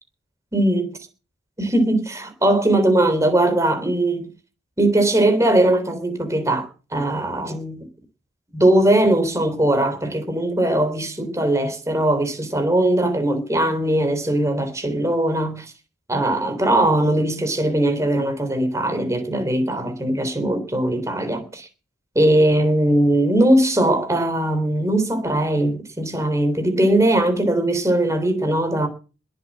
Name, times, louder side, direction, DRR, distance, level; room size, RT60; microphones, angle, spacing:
voice 1, 0.5-0.9 1.6-4.3 4.8-7.9 8.5-15.7 16.1-21.7 22.1-28.9, right 1 dB, 15° right, 3.4 m, -20 dB
21.0 x 7.8 x 7.4 m
head